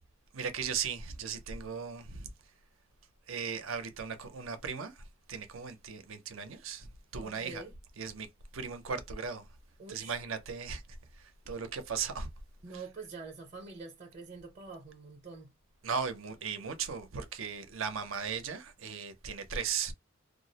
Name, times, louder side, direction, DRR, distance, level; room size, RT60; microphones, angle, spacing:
voice 1, 0.3-2.3 3.3-7.6 8.0-8.3 8.5-9.5 9.9-12.3 15.8-19.9, right 6 dB, 80° right, 0.6 m, -37 dB
voice 2, 7.2-7.7 9.8-10.2 12.6-15.5, right 3 dB, 35° right, 0.7 m, -46 dB
2.4 x 2.0 x 2.7 m
head